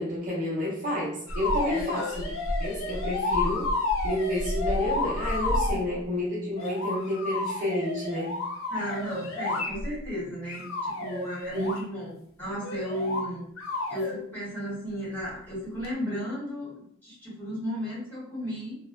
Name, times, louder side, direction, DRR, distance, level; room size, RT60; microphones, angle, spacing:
voice 1, 0.0-2.3 2.6-3.7 4.0-8.3 11.5-11.8, left 1 dB, 40° right, -6 dB, 0.8 m, -30 dB
sound 1, 1.3-5.8 6.6-10.0 10.5-11.8 12.6-13.3 13.6-14.1 15.8-15.9, left 2 dB, 75° left, 0.5 m, -30 dB
voice 2, 1.7-2.0 5.7-5.8 8.7-13.5 13.9-18.8, equal, 10° left, -9 dB, 1.1 m, -34 dB
2.6 x 2.1 x 2.4 m, 0.69 s
head